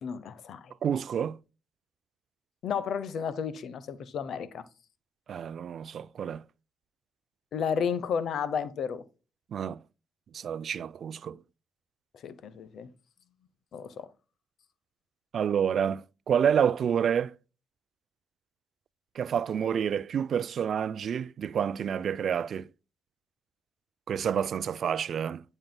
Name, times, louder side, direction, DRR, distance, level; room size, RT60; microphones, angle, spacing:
voice 1, 0.0-0.7 2.6-4.6 7.5-9.0 12.2-12.9 13.7-14.1, left 7 dB, 70° left, 0.7 m, -32 dB
voice 2, 0.8-1.4 5.3-6.4 9.5-9.8 10.3-11.4 15.3-17.3 19.2-22.7 24.1-25.4, right 8 dB, 65° right, 0.3 m, -28 dB
8.8 x 5.4 x 2.2 m
supercardioid pair, 65°, 0 cm